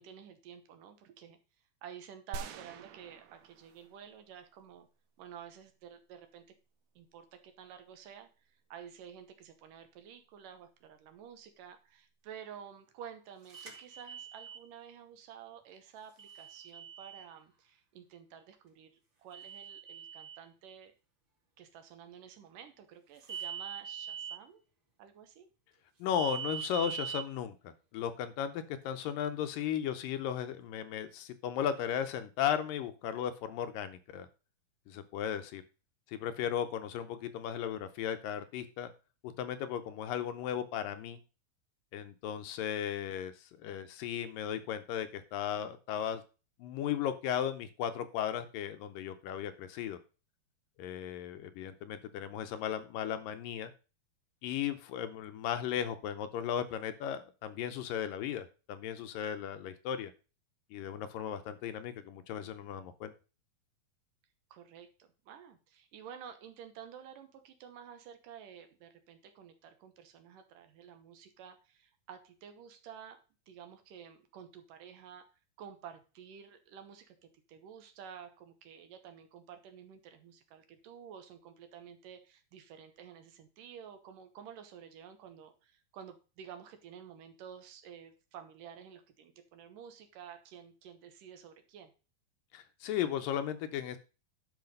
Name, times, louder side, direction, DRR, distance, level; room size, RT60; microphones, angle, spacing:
voice 1, 0.0-1.4 1.8-4.9 5.2-6.4 7.0-18.9 19.2-20.9 21.6-24.6 25.0-25.5 64.5-75.3 75.6-91.9, right 8 dB, 70° right, 8 dB, 2.5 m, -51 dB
sound 1, 2.3-4.3 4.6-4.7, right 5 dB, 85° right, 2.8 m, -46 dB
sound 2, 13.5-14.6 16.2-17.3 19.3-20.4 23.2-24.4 26.2-27.2, right 8 dB, 30° right, 2.8 m, -42 dB
voice 2, 26.0-34.3 34.9-35.6 36.1-38.9 39.2-41.2 41.9-46.2 46.6-50.0 50.8-53.7 54.4-60.1 60.7-63.1 92.5-94.0, left 9 dB, 75° left, 10 dB, 2.3 m, -36 dB
10.5 x 5.7 x 5.3 m, 0.33 s
omnidirectional pair, 4.3 m